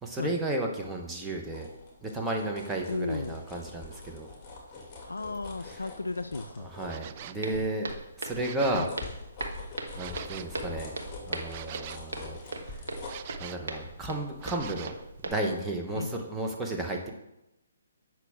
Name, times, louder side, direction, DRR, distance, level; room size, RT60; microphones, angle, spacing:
voice 1, 0.0-1.7 2.0-4.3 6.7-8.9 10.0-10.9 11.2-12.4 12.7-12.8 13.4-15.0 15.2-17.1, right 2 dB, 10° right, 0 dB, 1.0 m, -33 dB
sound 1, 1.5-7.6 8.0-15.5 15.9-16.0, left 4 dB, 20° left, 2.3 m, -46 dB
voice 2, 2.9-3.4 5.1-6.7 8.7-8.9 15.9-16.2, left 3 dB, 80° left, 10 dB, 0.4 m, -34 dB
sound 2, 6.9-7.4 8.3-9.0 9.9-10.5 11.5-12.1 13.0-13.7 14.4-15.0, right 10 dB, 35° right, 0.4 m, -44 dB
Walk footsteps, 7.4-15.3, right 2 dB, 70° right, 1.1 m, -39 dB
8.2 x 6.0 x 3.6 m, 0.89 s
figure-of-eight pair, 135°, 0 cm